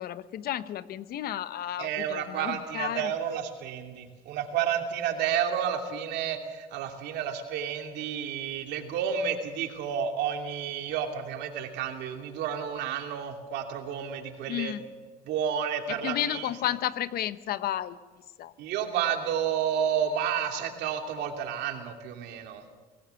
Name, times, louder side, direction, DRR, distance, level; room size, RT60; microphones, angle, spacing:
voice 1, 0.0-3.1 14.5-14.8 15.9-18.0 18.4-18.5, left 11 dB, 65° left, 14 dB, 1.0 m, -32 dB
voice 2, 1.8-14.7 15.3-16.5 18.6-22.6, right 8 dB, 85° right, 4 dB, 2.7 m, -31 dB
23.5 x 18.0 x 7.1 m, 1.3 s
cardioid pair, 110°, 17 cm